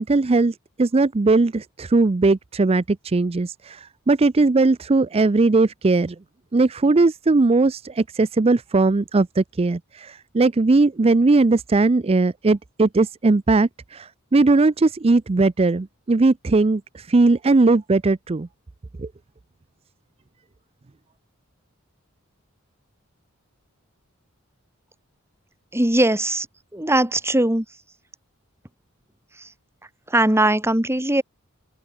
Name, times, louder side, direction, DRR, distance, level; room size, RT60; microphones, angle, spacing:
voice 1, 0.0-6.2 6.5-18.5 19.0-19.1, right 3 dB, 30° right, 0.5 m, -19 dB
voice 2, 25.7-26.5 26.7-27.7 29.4-29.5 30.1-31.2, right 1 dB, 10° right, 2.5 m, -20 dB
open air
head